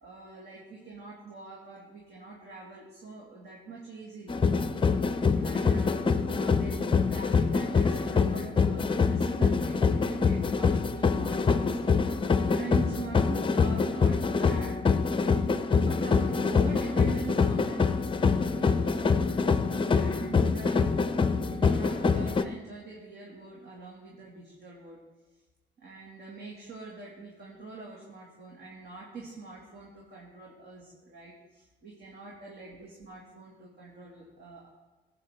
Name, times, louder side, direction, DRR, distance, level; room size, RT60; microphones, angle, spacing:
voice 1, 0.0-4.4 5.4-14.8 15.7-19.2 19.5-21.0 21.3-25.0 25.8-34.7, right 4 dB, 55° right, -4 dB, 2.3 m, -43 dB
sound 1, 4.3-22.4, left 5 dB, 25° left, 0.6 m, -25 dB
15.5 x 8.3 x 3.7 m, 1.2 s
cardioid pair, 90°, 20 cm